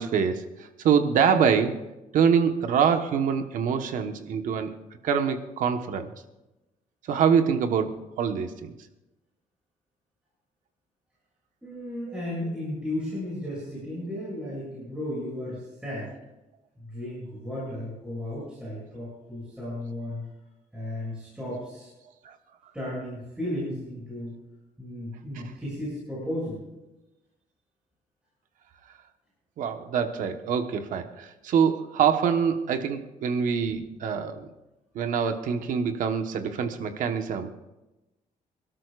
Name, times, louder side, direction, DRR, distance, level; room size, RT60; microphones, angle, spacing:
voice 1, 0.0-1.8 2.1-4.7 5.0-6.1 7.1-8.7 12.1-12.2 22.2-22.3 25.3-25.5 29.6-34.5 34.9-37.5, right 7 dB, 75° right, 6 dB, 1.3 m, -25 dB
voice 2, 11.6-16.1 16.8-20.3 20.7-21.9 22.7-24.4 24.8-26.6, left 1 dB, 5° right, -9 dB, 6.7 m, -34 dB
27.0 x 13.0 x 2.5 m, 0.99 s
cardioid pair, 170°, 14 cm